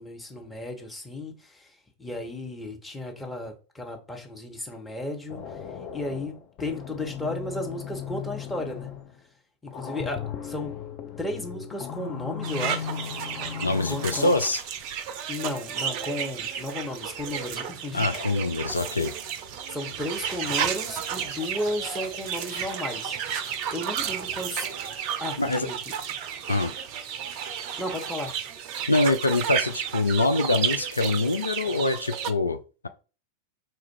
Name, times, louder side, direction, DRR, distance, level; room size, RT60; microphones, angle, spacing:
voice 1, 0.0-5.6 5.9-8.9 9.6-10.7 11.2-12.9 13.9-14.3 15.3-18.1 19.7-23.2 23.7-24.6 25.2-25.8 27.8-28.3, left 1 dB, 10° left, 1.1 m, -34 dB
sound 1, 5.3-9.2 9.7-14.4, left 8 dB, 35° left, 0.7 m, -37 dB
sound 2, 12.4-32.3, right 8 dB, 45° right, 0.5 m, -32 dB
voice 2, 13.6-14.6 17.9-19.1 25.4-25.7 26.5-26.7 28.9-32.9, left 2 dB, 80° left, 0.3 m, -24 dB
sound 3, 14.1-23.4, left 3 dB, 55° left, 1.7 m, -52 dB
4.4 x 2.4 x 4.5 m
figure-of-eight pair, 90°, 0 cm